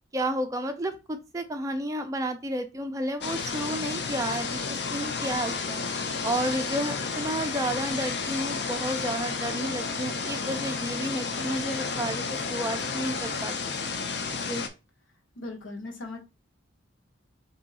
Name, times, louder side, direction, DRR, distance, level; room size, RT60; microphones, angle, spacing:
voice 1, 0.1-5.8 6.2-13.5 14.5-14.7, right 1 dB, 15° right, 7 dB, 0.4 m, -31 dB
sound 1, 3.2-14.7, left 4 dB, 55° left, 0.6 m, -31 dB
voice 2, 15.4-16.2, left 2 dB, 80° left, 1 dB, 1.1 m, -38 dB
3.5 x 2.7 x 4.0 m, 0.28 s
head